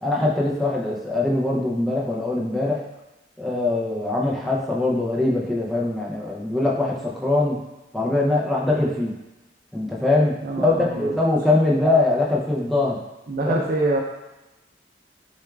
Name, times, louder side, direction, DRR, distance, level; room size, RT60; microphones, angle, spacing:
voice 1, 0.0-2.8 3.4-7.6 7.9-9.2 9.7-13.0 13.4-13.5, left 2 dB, ahead, -4 dB, 0.6 m, -22 dB
voice 2, 10.4-11.1 13.3-14.0, right 2 dB, 55° right, -1 dB, 0.5 m, -25 dB
6.1 x 2.4 x 2.3 m, 0.98 s
head